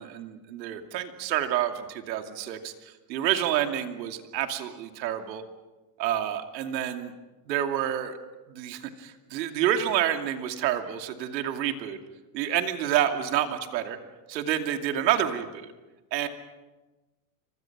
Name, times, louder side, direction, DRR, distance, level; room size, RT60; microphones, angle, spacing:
voice 1, 0.0-5.4 6.0-7.1 7.5-8.2 8.5-12.0 12.3-14.0 14.3-15.4 16.1-16.3, right 11 dB, 90° right, 6 dB, 2.7 m, -28 dB
29.0 x 25.0 x 6.0 m, 1.2 s
supercardioid pair, 180°, 49 cm